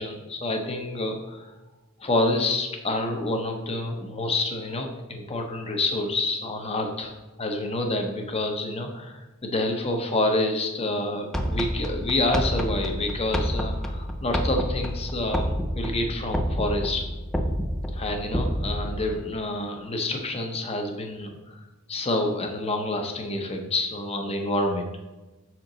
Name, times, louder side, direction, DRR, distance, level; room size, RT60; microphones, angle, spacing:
voice 1, 0.0-1.5 2.0-17.0 17.9-21.6 21.9-24.9, left 2 dB, 30° left, 3 dB, 0.8 m, -28 dB
sound 1, 11.3-19.2, equal, ahead, 0.4 m, -29 dB
6.4 x 4.5 x 3.8 m, 1.1 s
head